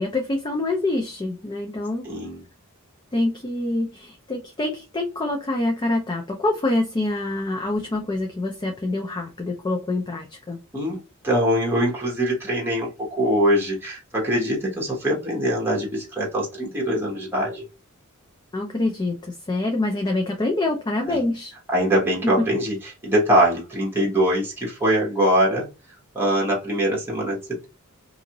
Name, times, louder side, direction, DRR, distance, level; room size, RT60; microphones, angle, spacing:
voice 1, 0.0-2.1 3.1-10.6 18.5-21.5 22.4-22.5, left 2 dB, 20° left, 0.4 m, -26 dB
voice 2, 2.0-2.4 10.7-17.6 21.0-21.3 21.7-25.7 26.1-27.7, equal, 10° right, 1.0 m, -23 dB
2.6 x 2.4 x 2.8 m
head